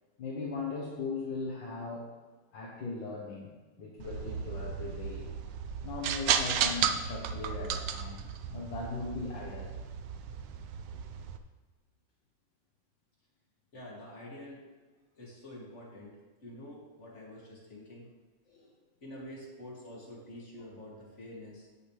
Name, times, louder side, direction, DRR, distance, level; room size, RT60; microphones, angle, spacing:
voice 1, 0.2-2.1 2.5-3.5 3.8-5.3 5.8-9.7 18.5-18.7, left 3 dB, 70° left, -2 dB, 2.0 m, -39 dB
sound 1, 4.0-11.4, right 8 dB, 70° right, 1.3 m, -34 dB
voice 2, 13.7-14.6 15.1-16.2 16.4-18.1 19.0-21.7, left 1 dB, 35° left, -5 dB, 3.1 m, -47 dB
17.0 x 6.8 x 3.4 m, 1.3 s
omnidirectional pair, 2.1 m